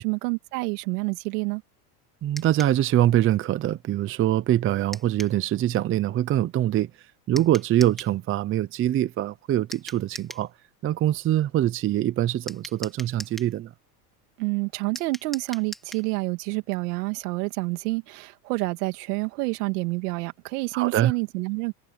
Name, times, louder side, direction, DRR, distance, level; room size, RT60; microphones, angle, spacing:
voice 1, 0.0-1.6 14.4-21.7, right 26 dB, 75° right, 2.8 m, -28 dB
voice 2, 2.2-6.9 7.3-10.5 10.8-13.7 20.7-21.1, right 12 dB, 25° right, 0.7 m, -24 dB
sound 1, 2.4-2.8 4.9-5.4 7.4-8.2 9.7-10.5 12.5-13.5 15.0-16.1, equal, ahead, 4.5 m, -40 dB
supercardioid pair, 135°, 47 cm